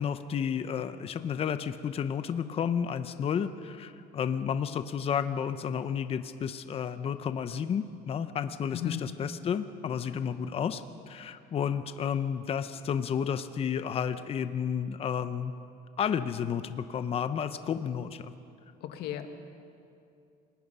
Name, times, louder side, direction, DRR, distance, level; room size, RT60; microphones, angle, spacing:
voice 1, 0.0-15.5 16.0-18.3, left 7 dB, 35° left, 11 dB, 0.8 m, -31 dB
voice 2, 8.7-9.0 18.8-19.3, left 11 dB, 70° left, 6 dB, 1.8 m, -35 dB
28.5 x 19.5 x 5.6 m, 2.5 s
cardioid pair, 140°, 17 cm